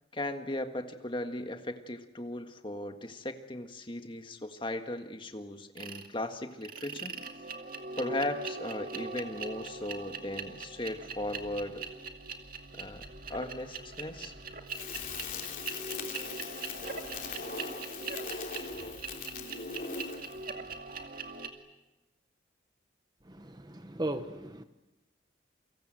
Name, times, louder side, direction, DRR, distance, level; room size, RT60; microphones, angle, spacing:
voice 1, 0.1-7.1 8.0-11.9 12.7-13.0 13.3-14.3, left 1 dB, 25° left, 6 dB, 1.7 m, -37 dB
sound 1, 5.8-6.1 6.6-21.5, right 4 dB, 45° right, 2.3 m, -41 dB
Crackle, 14.7-20.4, left 5 dB, 45° left, 3.2 m, -40 dB
voice 2, 23.2-24.6, right 1 dB, 20° right, 9 dB, 1.1 m, -37 dB
29.5 x 24.5 x 7.8 m, 1.0 s
head